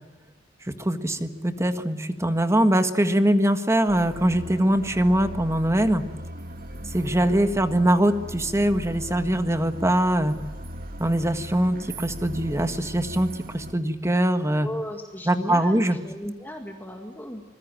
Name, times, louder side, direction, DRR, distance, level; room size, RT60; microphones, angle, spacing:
voice 1, 0.7-6.0 6.9-10.3 11.0-14.7 15.3-16.0, right 1 dB, 15° right, 8 dB, 1.6 m, -22 dB
sound 1, 3.9-13.7, right 1 dB, 50° right, 1.6 m, -38 dB
voice 2, 14.6-17.4, equal, 10° left, 2 dB, 2.0 m, -35 dB
25.0 x 22.0 x 9.0 m, 1.1 s
head